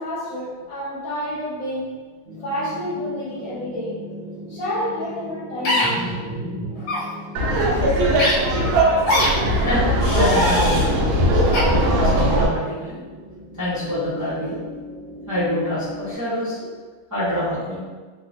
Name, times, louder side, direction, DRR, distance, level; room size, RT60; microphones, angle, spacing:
voice 1, 0.0-2.0 2.4-4.0 4.5-6.2, equal, 60° left, -6 dB, 0.9 m, -29 dB
sound 1, 2.3-16.1, left 1 dB, 65° right, 0.7 m, -39 dB
sound 2, 5.7-5.9 6.8-7.0 8.2-8.3 9.1-9.3 10.0-10.9 11.5-11.6, left 1 dB, 85° left, 1.6 m, -22 dB
voice 2, 5.8-6.7 9.6-11.4 11.7-13.0 13.6-14.6 15.3-16.7 17.1-17.8, left 1 dB, 20° right, -13 dB, 0.4 m, -26 dB
Laughter, 7.4-12.5, right 1 dB, 80° right, 1.4 m, -19 dB
3.7 x 2.1 x 2.7 m, 1.4 s
omnidirectional pair, 2.2 m